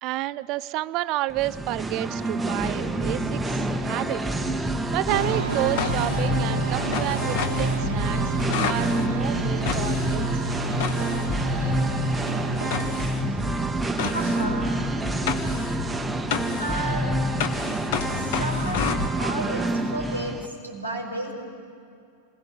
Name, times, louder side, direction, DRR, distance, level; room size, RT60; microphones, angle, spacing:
voice 1, 0.0-4.2 4.9-8.3 8.6-10.5, right 17 dB, 40° right, 18 dB, 0.5 m, -30 dB
Singing, 1.3-20.5, right 1 dB, 5° right, 1.2 m, -27 dB
sound 1, 5.0-11.9 12.7-19.1, left 8 dB, 50° left, 1.2 m, -32 dB
sound 2, 5.1-12.9, right 2 dB, 75° right, 1.3 m, -30 dB
voice 2, 12.9-14.9 16.6-17.2 18.1-18.9 19.2-21.3, right 1 dB, 90° left, 0 dB, 5.4 m, -33 dB
27.0 x 21.5 x 7.2 m, 2.4 s
figure-of-eight pair, 90°, 0 cm